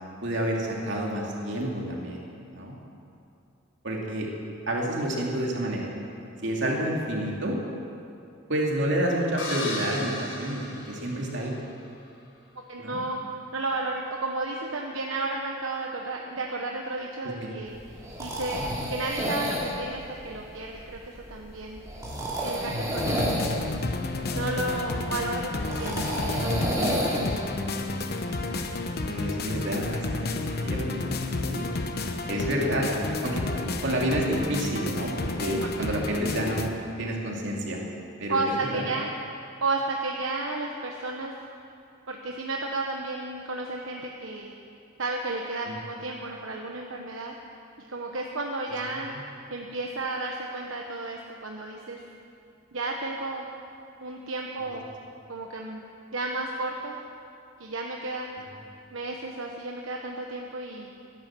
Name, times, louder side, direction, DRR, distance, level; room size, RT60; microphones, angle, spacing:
voice 1, 0.2-2.2 2.5-2.7 3.8-4.3 4.7-5.9 6.4-7.6 8.5-11.6 12.8-13.0 17.4-17.5 29.1-31.0 31.5-31.7 32.3-32.9 33.2-33.4 33.8-37.8 38.2-38.8 45.7-45.8, right 1 dB, 60° right, -2 dB, 2.9 m, -29 dB
sound 1, 9.4-11.6, left 1 dB, 70° left, 4.0 m, -36 dB
voice 2, 12.7-13.2 13.5-18.6 18.9-21.8 22.4-23.7 24.3-27.3 35.4-35.5 38.3-39.1 39.6-41.3 42.1-44.5 45.0-47.3 47.9-49.1 49.5-52.0 52.7-53.5 54.0-54.8 55.3-55.8 56.1-57.0 57.6-58.3 58.9-60.9, right 2 dB, 75° right, 0 dB, 1.1 m, -33 dB
sound 2, 17.7-27.4, equal, 15° right, 2.9 m, -31 dB
sound 3, 23.0-36.7, left 2 dB, 50° left, 0.9 m, -31 dB
16.0 x 11.0 x 7.6 m, 2.6 s
head